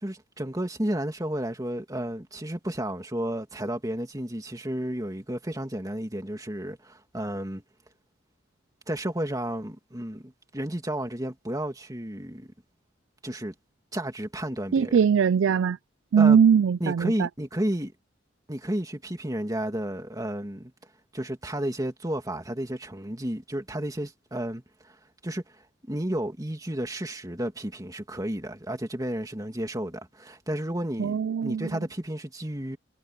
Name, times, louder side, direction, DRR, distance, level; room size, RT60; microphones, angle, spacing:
voice 1, 0.0-7.6 8.9-12.5 13.2-13.5 13.9-15.0 16.2-16.4 16.8-17.9 18.5-20.7 21.1-25.0 25.2-32.8, right 1 dB, 20° right, 2.6 m, -32 dB
voice 2, 14.7-15.8 16.1-17.3 31.0-31.7, right 7 dB, 85° right, 0.4 m, -21 dB
head